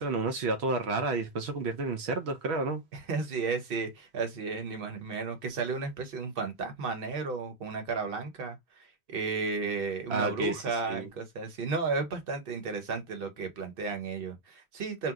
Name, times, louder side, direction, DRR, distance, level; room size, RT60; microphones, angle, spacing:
voice 1, 0.0-2.8 10.1-11.1, right 3 dB, 90° right, 0.9 m, -31 dB
voice 2, 2.9-15.1, right 4 dB, 60° right, 1.1 m, -33 dB
2.8 x 2.1 x 3.5 m
omnidirectional pair, 1.1 m